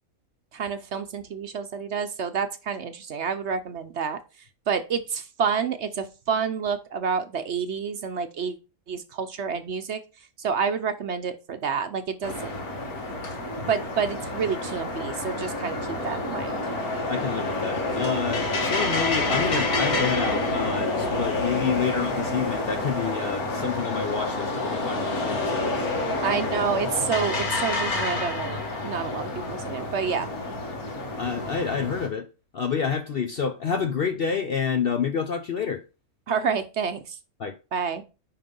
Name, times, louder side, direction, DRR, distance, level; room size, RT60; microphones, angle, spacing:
voice 1, 0.5-4.2 4.7-8.6 8.9-10.0 10.4-12.5 13.7-16.6 26.2-30.3 36.3-37.2 37.7-38.0, right 6 dB, 55° right, 0.9 m, -28 dB
sound 1, 12.2-32.1, left 2 dB, 75° left, 2.0 m, -28 dB
voice 2, 17.1-25.9 31.2-35.8 37.4-37.6, left 6 dB, 55° left, 0.7 m, -28 dB
5.7 x 5.2 x 5.3 m
omnidirectional pair, 1.6 m